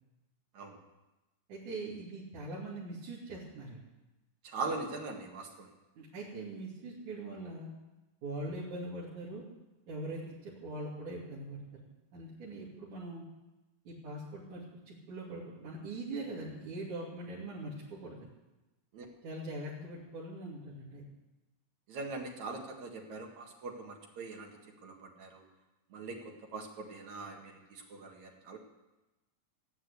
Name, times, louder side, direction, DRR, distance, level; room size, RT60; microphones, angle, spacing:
voice 1, 1.5-3.8 6.0-7.7 8.2-9.4 9.9-11.6 12.1-13.2 13.9-18.3 19.2-21.0, right 2 dB, 90° right, -8 dB, 4.3 m, -42 dB
voice 2, 4.4-5.7 18.9-19.1 21.9-24.5 24.8-25.4 25.9-28.6, right 3 dB, 70° right, 1 dB, 3.2 m, -41 dB
17.0 x 8.9 x 8.3 m, 1.0 s
omnidirectional pair, 3.3 m